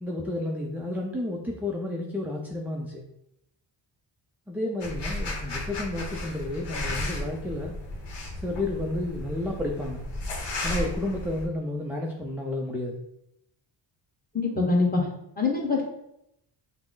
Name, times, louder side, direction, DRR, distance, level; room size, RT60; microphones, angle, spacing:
voice 1, 0.0-3.0 4.5-7.7 8.3-10.0 10.6-13.0, left 1 dB, 5° right, -1 dB, 0.4 m, -31 dB
sound 1, 4.8-11.5, left 1 dB, 60° left, 1.1 m, -34 dB
voice 2, 14.3-15.1 15.4-15.8, left 3 dB, 20° left, -2 dB, 1.3 m, -24 dB
5.9 x 2.1 x 3.8 m, 0.80 s
cardioid pair, 90°, 47 cm